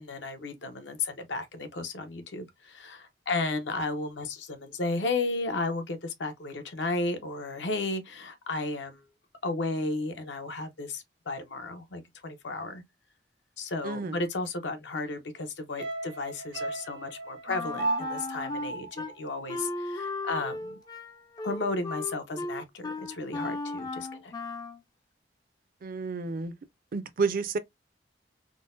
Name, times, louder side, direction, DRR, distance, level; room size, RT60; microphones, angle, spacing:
voice 1, 0.0-9.0 9.4-12.8 13.6-20.8 21.4-24.3, left 3 dB, 80° left, 0.7 m, -34 dB
voice 2, 13.8-14.3 25.8-26.5 26.9-27.6, right 4 dB, 50° right, 0.4 m, -30 dB
sound 1, 15.8-20.2 20.5-20.6, right 2 dB, 85° right, 0.9 m, -36 dB
Wind instrument woodwind instrument, 17.5-19.1 19.5-24.8, left 3 dB, 20° left, 0.3 m, -36 dB
3.8 x 2.0 x 2.4 m
head